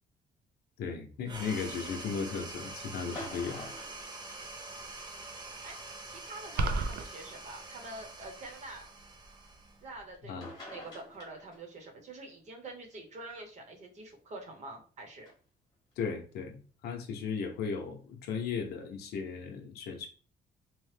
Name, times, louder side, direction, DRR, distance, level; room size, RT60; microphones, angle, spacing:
voice 1, 0.8-3.7 10.3-10.5 16.0-20.1, left 5 dB, 80° left, 3 dB, 0.7 m, -36 dB
sound 1, 1.2-10.1, right 2 dB, 25° right, 0.5 m, -45 dB
sound 2, 3.1-4.9 6.2-6.3 7.3-7.4 10.1-10.2 10.4-11.8 15.3-15.4, left 1 dB, 25° left, 1.0 m, -46 dB
voice 2, 6.1-8.9 9.8-10.4 10.7-15.3, right 2 dB, 45° right, 3 dB, 0.9 m, -46 dB
sound 3, 6.6-7.1, right 3 dB, 85° right, 0.4 m, -29 dB
3.0 x 2.1 x 3.2 m, 0.39 s
cardioid pair, 150°, 16 cm